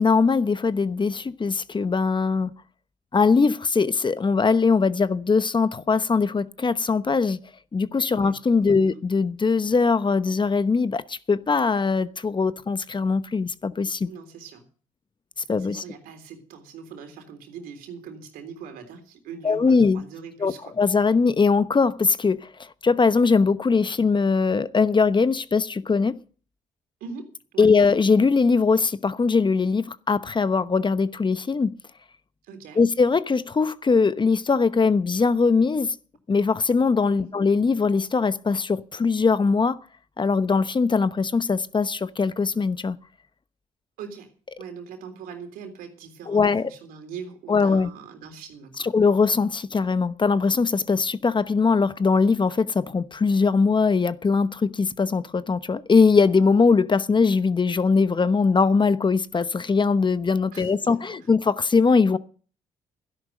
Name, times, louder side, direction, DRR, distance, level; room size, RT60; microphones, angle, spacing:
voice 1, 0.0-2.5 3.1-7.4 7.7-14.1 15.5-15.8 19.4-20.0 20.4-26.2 27.6-31.7 32.8-36.0 36.3-39.8 40.2-43.0 46.3-46.7 47.5-47.9 48.8-62.2, left 4 dB, 30° left, 0.9 m, -21 dB
voice 2, 14.0-14.6 15.6-20.7 27.0-27.7 32.4-32.8 37.1-37.4 44.0-44.3 44.6-48.9 60.5-61.3, right 6 dB, 80° right, 3.5 m, -41 dB
12.5 x 11.0 x 6.6 m
supercardioid pair, 55°, 15 cm